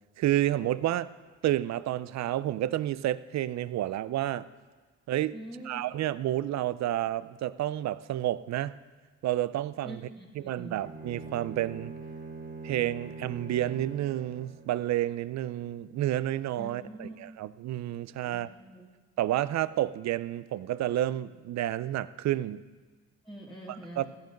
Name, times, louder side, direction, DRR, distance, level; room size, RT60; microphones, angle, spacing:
voice 1, 0.2-1.1 1.4-4.5 5.1-5.3 5.6-8.7 9.2-10.0 10.3-11.9 12.6-18.5 19.2-22.6 23.7-24.1, right 13 dB, 65° right, 16 dB, 0.5 m, -30 dB
voice 2, 5.3-5.8 9.8-10.8 16.6-17.2 18.2-18.9 23.3-24.1, right 1 dB, ahead, -5 dB, 2.1 m, -44 dB
Bowed string instrument, 10.8-14.8, right 3 dB, 30° right, 1.5 m, -43 dB
14.5 x 9.3 x 5.2 m, 1.4 s
cardioid pair, 90°, 30 cm